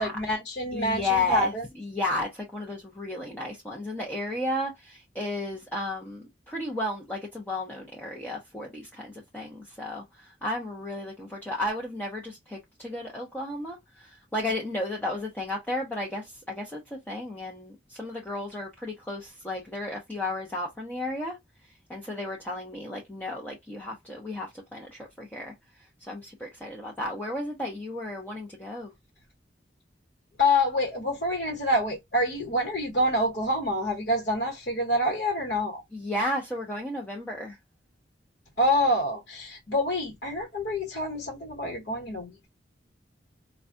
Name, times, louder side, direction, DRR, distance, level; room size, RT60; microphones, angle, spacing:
voice 1, 0.0-1.6 30.4-35.8 38.6-42.5, left 1 dB, 60° left, 1.0 m, -27 dB
voice 2, 0.7-16.8 17.1-21.4 21.9-25.5 26.1-28.9 35.9-37.6, left 2 dB, 10° left, 0.7 m, -33 dB
4.6 x 2.2 x 2.6 m
head